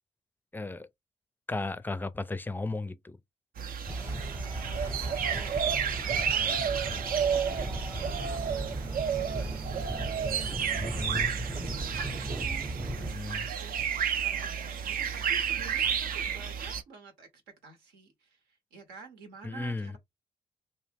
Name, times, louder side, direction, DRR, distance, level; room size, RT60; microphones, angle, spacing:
voice 1, 0.5-0.9 1.5-3.2 10.8-11.3 13.1-13.5 19.4-19.9, left 3 dB, 10° left, 0.4 m, -35 dB
sound 1, 3.6-16.8, right 7 dB, 60° right, 0.5 m, -31 dB
sound 2, 3.9-13.2, right 1 dB, 20° right, 0.8 m, -37 dB
voice 2, 4.2-5.5 6.0-8.4 9.0-17.3 17.6-20.0, right 4 dB, 85° right, 0.8 m, -50 dB
2.6 x 2.0 x 3.4 m
hypercardioid pair, 40°, 16 cm